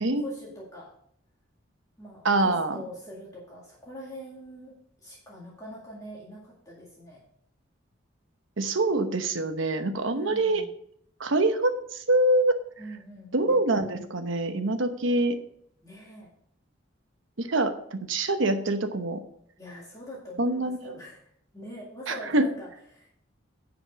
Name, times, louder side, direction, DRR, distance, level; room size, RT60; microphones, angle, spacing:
voice 1, 0.2-0.9 2.0-4.7 5.0-7.2 10.1-10.7 12.8-13.6 15.8-16.3 19.6-21.2 21.5-23.2, equal, 15° left, -5 dB, 1.9 m, -43 dB
voice 2, 2.2-2.8 8.6-10.6 11.2-12.5 13.3-15.3 17.4-19.2 20.4-21.0 22.1-22.4, right 2 dB, 80° right, 8 dB, 1.0 m, -25 dB
10.0 x 5.1 x 5.1 m, 0.67 s
head